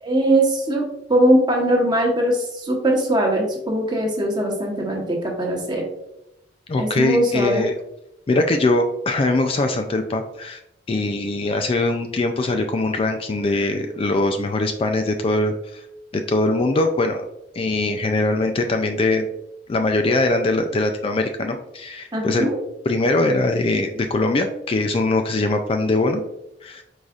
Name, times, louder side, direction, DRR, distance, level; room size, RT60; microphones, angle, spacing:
voice 1, 0.0-0.8 1.1-5.8 6.8-7.7 22.1-22.6, right 1 dB, 25° right, -1 dB, 1.1 m, -20 dB
voice 2, 6.7-7.7 8.3-10.6 10.9-15.8 16.1-17.3 17.5-19.3 19.7-22.5 22.9-26.2 26.6-26.8, left 2 dB, 30° left, 5 dB, 0.3 m, -21 dB
4.8 x 4.0 x 2.4 m, 0.85 s
head